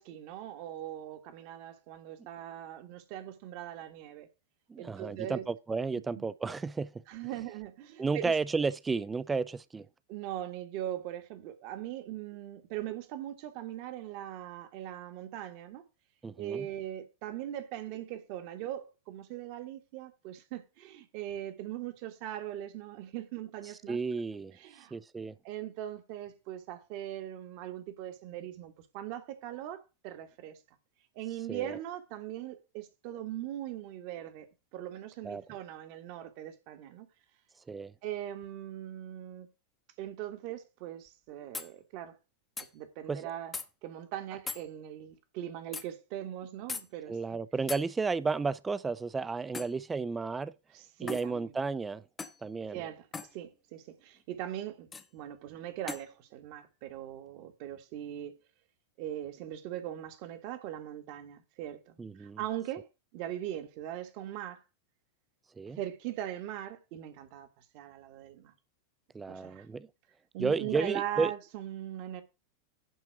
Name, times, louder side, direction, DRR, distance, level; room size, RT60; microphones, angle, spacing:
voice 1, 0.0-4.3 4.8-5.4 6.1-6.2 7.1-8.3 10.1-15.8 16.4-24.0 24.6-24.9 25.4-30.6 31.1-34.5 34.7-37.1 38.0-39.5 40.0-42.2 42.7-43.5 43.8-47.4 50.7-51.5 52.7-53.1 53.3-58.4 59.0-62.9 63.1-64.6 65.7-68.5 69.3-69.7 70.3-72.2, right 12 dB, 45° right, 1.6 m, -40 dB
voice 2, 4.7-7.0 8.0-9.9 16.2-16.7 23.9-24.6 24.9-25.3 31.5-31.8 35.2-35.4 37.7-37.9 43.1-43.2 47.1-50.5 51.0-52.0 52.4-52.8 62.0-62.4 65.6-65.8 69.1-69.9 70.4-71.3, right 4 dB, 15° right, 0.6 m, -32 dB
sound 1, 41.1-41.2 41.5-41.7 42.6-42.7 43.5-43.7 44.5-44.7 45.7-45.9 46.7-46.9 47.7-47.9 49.5-49.8 51.1-51.3 52.2-52.4 53.1-53.3 54.9-55.1 55.9-56.1, left 4 dB, 15° left, 0.9 m, -39 dB
11.0 x 4.3 x 6.1 m
figure-of-eight pair, 90°, 0 cm